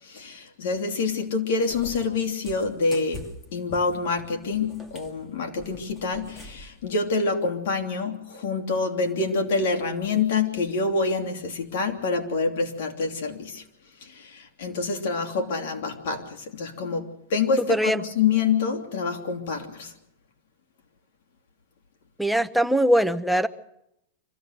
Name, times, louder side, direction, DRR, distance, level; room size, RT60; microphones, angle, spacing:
voice 1, 0.0-3.2 3.5-13.6 14.0-19.9, left 4 dB, 70° left, 5 dB, 3.0 m, -27 dB
Cat, 1.7-6.8, left 2 dB, 15° left, 2.3 m, -44 dB
voice 2, 17.7-18.0 22.2-23.5, equal, ahead, 10 dB, 0.8 m, -21 dB
25.5 x 16.0 x 6.6 m, 0.80 s
supercardioid pair, 135°, 0 cm